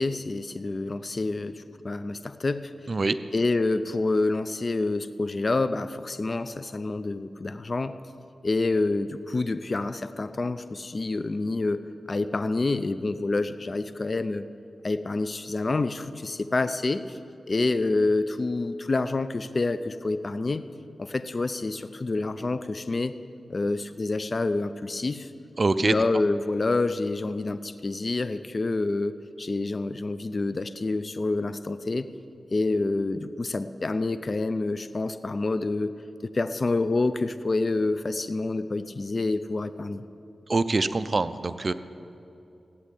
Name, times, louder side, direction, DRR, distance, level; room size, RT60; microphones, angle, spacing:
voice 1, 0.0-2.7 3.3-8.0 8.4-11.8 12.1-14.4 14.8-17.2 17.5-20.6 21.0-23.1 23.5-25.3 25.8-29.1 29.4-32.1 32.5-36.0 36.2-40.0, left 3 dB, 45° left, 12 dB, 0.5 m, -27 dB
voice 2, 25.6-25.9 40.5-41.7, right 3 dB, 45° right, 13 dB, 0.6 m, -24 dB
15.0 x 8.5 x 9.9 m, 2.7 s
cardioid pair, 70°, 0 cm